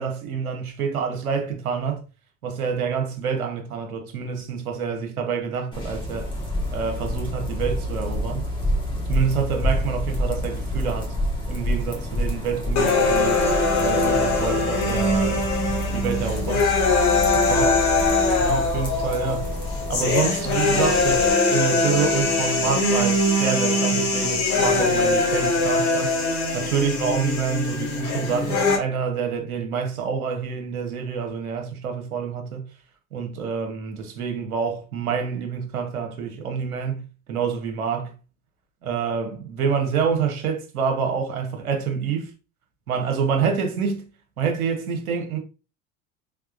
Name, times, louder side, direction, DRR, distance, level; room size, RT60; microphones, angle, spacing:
voice 1, 0.0-2.0 2.4-6.3 6.7-8.5 9.1-11.1 11.4-13.4 13.8-16.7 17.5-17.8 18.4-19.5 19.9-26.2 26.5-32.6 33.1-38.1 38.8-42.3 42.9-44.1 44.4-45.4, right 6 dB, 80° right, 1.1 m, -27 dB
sound 1, 5.7-21.3, left 1 dB, 10° left, 1.4 m, -28 dB
sound 2, 12.8-28.8, left 3 dB, 40° left, 1.7 m, -22 dB
3.5 x 3.4 x 2.5 m
hypercardioid pair, 75°, 43 cm